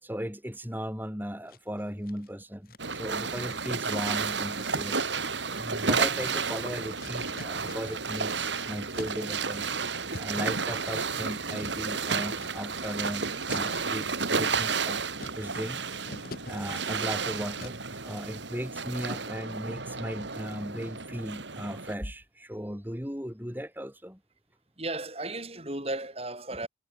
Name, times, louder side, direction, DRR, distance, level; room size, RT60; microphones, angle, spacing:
voice 1, 0.0-9.7 10.2-15.0 15.4-15.8 16.5-24.2, equal, 10° right, 5.5 m, -37 dB
sound 1, 1.5-2.3 2.7-8.1 8.4-18.0, left 2 dB, 50° left, 3.5 m, -48 dB
sound 2, 2.8-21.9, right 5 dB, 75° right, 3.1 m, -32 dB
voice 2, 24.8-26.7, right 2 dB, 30° right, 7.8 m, -35 dB
head